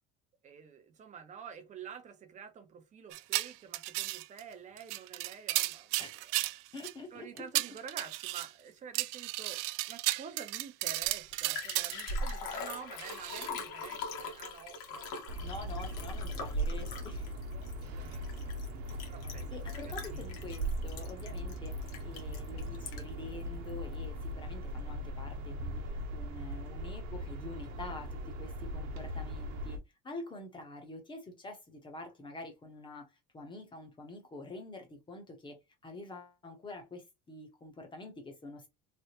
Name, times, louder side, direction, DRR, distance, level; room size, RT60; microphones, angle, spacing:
voice 1, 0.4-6.4 7.1-9.6 9.9-15.1 15.9-16.0 17.0-18.5 19.1-20.2, right 7 dB, 25° right, 0.6 m, -49 dB
sound 1, 3.1-4.4 4.8-6.9 7.4-8.5 8.9-12.3 13.0-13.5, right 19 dB, 85° right, 0.5 m, -34 dB
voice 2, 6.7-7.4 15.4-17.3 19.5-29.8 30.0-33.1 33.3-35.6 35.8-38.7, left 2 dB, 15° left, 0.8 m, -46 dB
Liquid, 11.0-11.1 11.3-23.2 23.7-23.8, equal, 85° left, 1.5 m, -39 dB
sound 2, 15.3-29.8, equal, 65° right, 1.0 m, -40 dB
3.3 x 3.3 x 2.9 m
cardioid pair, 175°, 31 cm